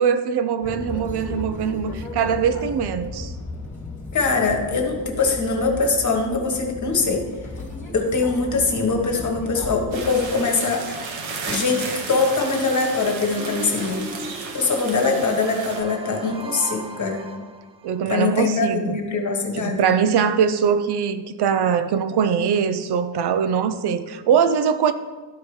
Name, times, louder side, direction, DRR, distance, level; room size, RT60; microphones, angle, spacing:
voice 1, 0.0-3.3 16.2-16.3 17.8-19.0 19.5-24.9, right 7 dB, 60° right, 0.6 m, -22 dB
sound 1, 0.6-10.3, left 2 dB, 15° left, 1.6 m, -35 dB
voice 2, 4.1-7.3 7.9-10.8 11.5-14.0 14.5-17.3 18.1-19.9, left 4 dB, 40° left, 1.4 m, -22 dB
sound 2, 9.9-15.8, right 4 dB, 80° right, 1.2 m, -33 dB
sound 3, 13.4-18.0, right 2 dB, 15° right, 0.4 m, -37 dB
12.5 x 4.7 x 3.2 m
wide cardioid pair, 145°, 46 cm